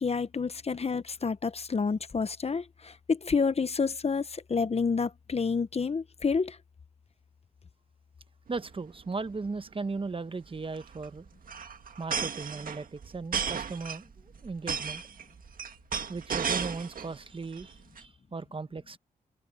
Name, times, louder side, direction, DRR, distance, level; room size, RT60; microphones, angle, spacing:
voice 1, 0.0-6.6, left 5 dB, 40° left, 1.0 m, -29 dB
voice 2, 8.5-11.2 12.0-15.0 16.1-19.0, right 4 dB, 35° right, 1.1 m, -37 dB
sound 1, 8.5-8.7 9.0-9.1 9.3-9.6 10.5-17.1 17.5-18.0, right 6 dB, 65° right, 1.8 m, -34 dB
cardioid pair, 70°, 16 cm